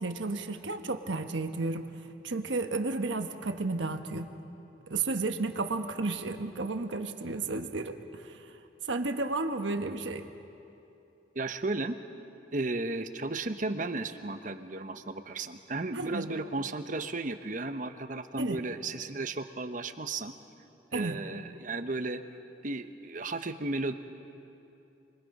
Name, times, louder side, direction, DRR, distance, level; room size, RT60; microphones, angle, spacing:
voice 1, 0.0-1.9 2.2-4.3 4.9-8.4 8.9-10.3 15.9-16.3 18.4-18.6 20.9-21.2, right 3 dB, 90° right, 6 dB, 1.3 m, -32 dB
voice 2, 11.3-12.0 12.5-20.3 20.9-22.2 22.6-23.9, right 2 dB, 45° right, 9 dB, 0.9 m, -34 dB
29.0 x 22.0 x 5.4 m, 2.8 s
head